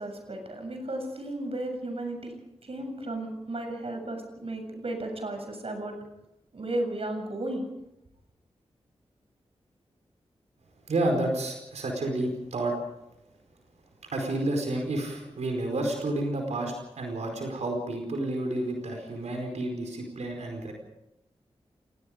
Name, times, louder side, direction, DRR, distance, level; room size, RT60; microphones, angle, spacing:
voice 1, 0.0-2.3 2.6-6.0 6.5-7.6, right 1 dB, 60° right, 4 dB, 7.4 m, -34 dB
voice 2, 10.9-12.8 14.0-20.7, right 2 dB, 85° right, 2 dB, 4.8 m, -30 dB
27.5 x 19.0 x 5.2 m, 0.87 s
cardioid pair, 50°, 11 cm